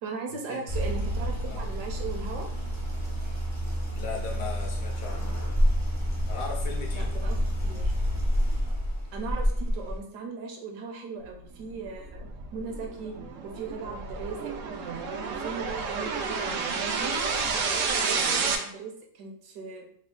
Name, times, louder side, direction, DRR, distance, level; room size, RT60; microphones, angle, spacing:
voice 1, 0.0-2.5 6.9-7.9 9.1-13.2 13.4-14.8 15.3-19.9, right 5 dB, 75° right, 2 dB, 1.1 m, -38 dB
sound 1, 0.7-10.0, equal, 25° left, 0.3 m, -28 dB
voice 2, 3.9-5.4 6.3-7.2, left 4 dB, 70° left, 1 dB, 1.0 m, -37 dB
sound 2, 11.6-18.6, right 5 dB, 90° right, 0.6 m, -30 dB
3.4 x 2.2 x 3.6 m, 0.63 s
omnidirectional pair, 1.9 m